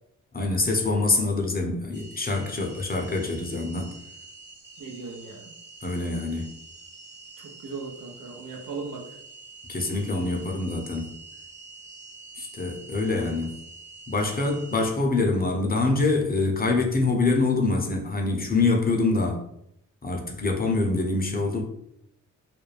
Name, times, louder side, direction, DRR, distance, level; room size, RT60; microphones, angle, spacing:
voice 1, 0.3-3.9 5.8-6.5 9.7-11.1 12.4-13.6 14.1-19.4 20.0-21.6, left 3 dB, 25° left, 1 dB, 0.7 m, -25 dB
sound 1, 1.9-14.9, right 3 dB, 35° right, 0.8 m, -46 dB
voice 2, 4.8-5.5 7.4-9.1, right 4 dB, 75° right, 1 dB, 0.8 m, -38 dB
2.5 x 2.1 x 3.2 m, 0.77 s
cardioid pair, 55°, 33 cm